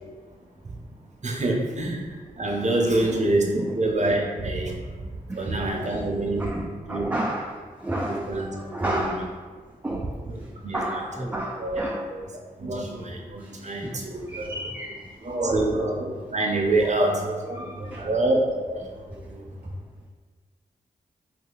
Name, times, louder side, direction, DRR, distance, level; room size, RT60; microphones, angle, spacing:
voice 1, 1.2-2.0 2.4-4.8 5.4-7.1 8.1-8.5 8.8-9.1 10.4-12.3 12.6-14.6 15.2-19.4, right 2 dB, 45° right, 0 dB, 0.7 m, -26 dB
voice 2, 6.4-9.4 9.8-12.1 13.4-15.2 17.6-18.1 19.2-19.3 19.7-19.8, right 1 dB, 10° right, 0 dB, 0.3 m, -33 dB
2.7 x 2.6 x 3.8 m, 1.5 s
cardioid pair, 45°, 16 cm